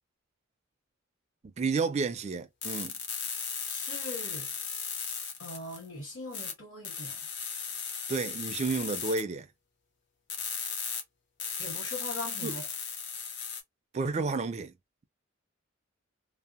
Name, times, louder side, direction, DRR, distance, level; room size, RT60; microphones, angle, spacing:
voice 1, 1.6-2.9 8.1-9.5 12.4-12.5 13.9-14.7, right 4 dB, 35° right, 0.4 m, -31 dB
sound 1, 2.6-5.9 6.3-6.5 6.8-9.2 10.3-11.0 11.4-13.6, left 6 dB, 60° left, 0.7 m, -36 dB
voice 2, 3.6-4.5 5.4-7.3 11.6-12.7, left 2 dB, 80° left, 1.6 m, -41 dB
2.7 x 2.0 x 2.4 m
head